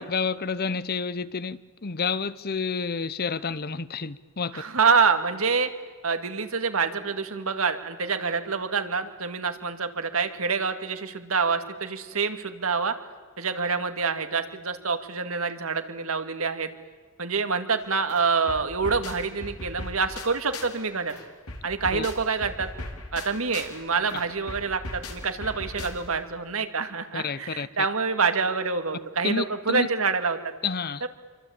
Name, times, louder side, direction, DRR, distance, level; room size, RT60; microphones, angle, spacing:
voice 1, 0.0-4.6 21.9-22.1 27.1-27.7 29.2-29.9 30.6-31.0, left 5 dB, 45° left, 0.9 m, -29 dB
voice 2, 4.5-5.7 6.0-12.9 13.4-16.7 17.2-21.2 21.6-22.7 23.1-30.4, right 5 dB, 70° right, 2.3 m, -26 dB
sound 1, 17.8-17.9 18.1-20.8 21.1-26.3, left 2 dB, 80° left, 4.2 m, -39 dB
28.0 x 24.5 x 8.8 m
head